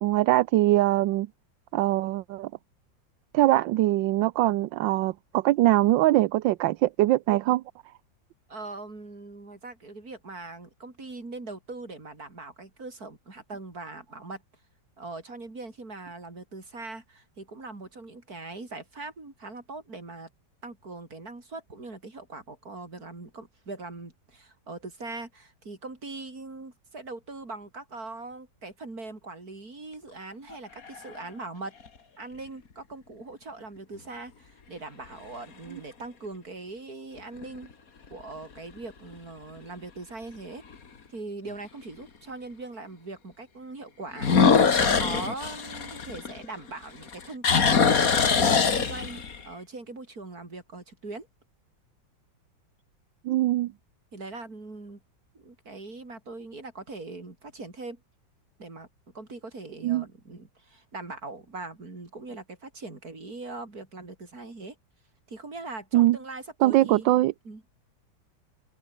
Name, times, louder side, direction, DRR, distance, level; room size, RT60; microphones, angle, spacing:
voice 1, 0.0-1.3 1.7-2.5 3.3-7.6 53.2-53.7 59.8-60.0 65.9-66.2 66.6-67.3, right 16 dB, 80° right, 1.3 m, -22 dB
voice 2, 8.5-14.4 15.0-20.3 20.6-31.7 32.2-37.7 38.1-40.6 41.1-51.3 54.1-55.0 55.3-58.0 58.6-58.9 59.1-64.8 65.3-67.1 67.5-67.6, right 3 dB, 50° right, 5.2 m, -41 dB
sound 1, 30.5-31.2 31.9-32.0 37.2-37.6 38.1-38.2 38.8-38.9 39.1-39.2 40.7-40.8 44.2-46.7 47.0-49.4, left 5 dB, 50° left, 2.3 m, -22 dB
open air
omnidirectional pair, 2.1 m